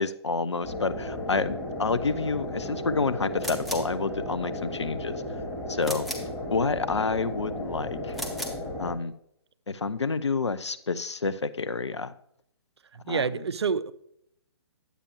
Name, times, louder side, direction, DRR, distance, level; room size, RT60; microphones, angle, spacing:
voice 1, 0.0-5.2 5.7-6.1 6.5-8.1 8.8-9.1 9.7-12.1 13.1-13.4, left 4 dB, 85° left, 0.6 m, -29 dB
sound 1, 0.6-8.9, left 1 dB, 20° left, 2.3 m, -34 dB
sound 2, 3.4-4.0 5.8-6.4 8.1-8.6, equal, ahead, 0.9 m, -35 dB
voice 2, 12.9-13.9, right 6 dB, 70° right, 0.5 m, -28 dB
10.0 x 8.2 x 3.0 m
figure-of-eight pair, 130°, 14 cm